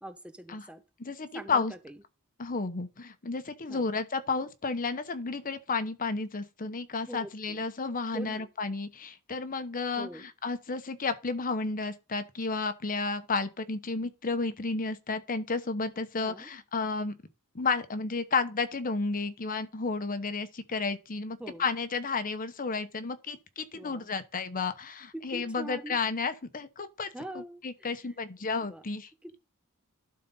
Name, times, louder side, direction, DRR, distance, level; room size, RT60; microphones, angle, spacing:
voice 1, 0.0-0.8 1.3-2.0 3.7-3.9 7.1-7.6 8.1-8.5 10.0-10.2 16.2-16.5 21.4-21.7 23.7-24.1 25.1-26.0 27.1-28.1 28.6-28.8 29.2-29.4, right 1 dB, 5° right, 0.6 m, -43 dB
voice 2, 1.0-1.7 2.4-17.1 17.5-27.1 27.3-29.1, left 4 dB, 40° left, 1.0 m, -32 dB
11.5 x 4.0 x 5.6 m
head